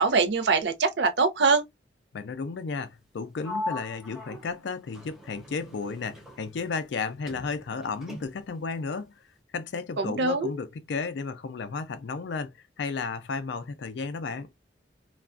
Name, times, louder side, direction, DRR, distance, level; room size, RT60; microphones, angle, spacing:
voice 1, 0.0-1.6 10.0-10.5, right 4 dB, 65° right, 0.5 m, -23 dB
voice 2, 2.1-9.1 9.5-12.5 12.8-14.5, left 4 dB, 70° left, 0.4 m, -33 dB
Sliding door, 3.4-7.0 7.3-8.6, left 1 dB, ahead, 0.5 m, -39 dB
2.4 x 2.2 x 2.3 m
head